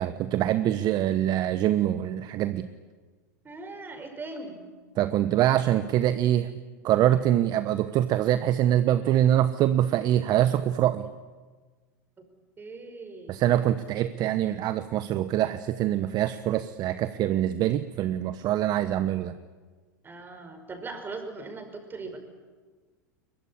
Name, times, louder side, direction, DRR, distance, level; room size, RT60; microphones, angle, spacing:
voice 1, 0.0-2.7 5.0-6.5 6.8-11.1 13.3-19.4, right 12 dB, 45° right, 12 dB, 1.0 m, -24 dB
voice 2, 3.4-4.6 12.6-13.3 20.0-22.2, right 3 dB, 20° right, 6 dB, 5.5 m, -39 dB
23.0 x 21.0 x 10.0 m, 1.4 s
hypercardioid pair, 100°, 10 cm